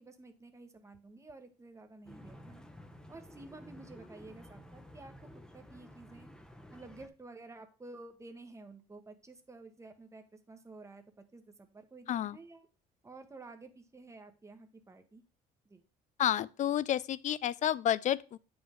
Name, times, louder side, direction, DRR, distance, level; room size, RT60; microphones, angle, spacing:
voice 1, 0.0-2.6 3.1-5.1 5.5-6.3 6.7-12.7 13.0-15.2 15.6-15.8, right 3 dB, 15° right, 1.1 m, -52 dB
sound 1, 2.1-7.1, equal, 5° left, 0.8 m, -52 dB
voice 2, 16.2-18.4, left 11 dB, 45° left, 0.4 m, -30 dB
8.6 x 5.3 x 3.5 m
cardioid pair, 110°, 17 cm